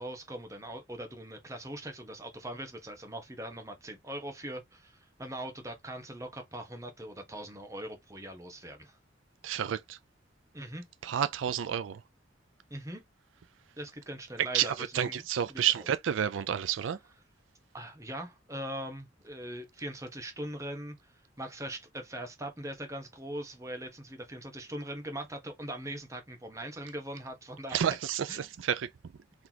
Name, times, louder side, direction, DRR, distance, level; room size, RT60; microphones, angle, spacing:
voice 1, 0.0-9.0 10.5-10.8 12.7-13.0 13.8-15.9 17.7-27.8 28.3-28.5, right 1 dB, 15° right, 1.0 m, -41 dB
voice 2, 9.4-10.0 11.0-12.0 14.5-17.0 27.7-28.9, right 9 dB, 80° right, 0.4 m, -30 dB
4.0 x 3.3 x 2.8 m
head